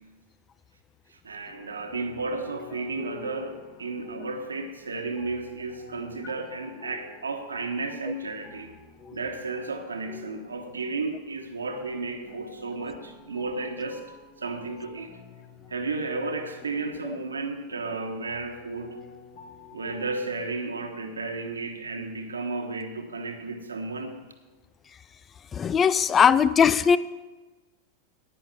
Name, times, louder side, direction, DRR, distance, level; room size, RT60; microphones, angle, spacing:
voice 1, 1.1-8.7 9.1-14.0 14.4-15.2 15.7-19.0 19.7-24.2, right 3 dB, 75° right, 6 dB, 1.3 m, -33 dB
sound 1, 1.4-20.3, left 5 dB, 45° left, 3.0 m, -48 dB
voice 2, 25.5-27.0, left 7 dB, 20° left, 16 dB, 0.4 m, -19 dB
10.0 x 9.8 x 5.8 m, 1.2 s
figure-of-eight pair, 90°, 0 cm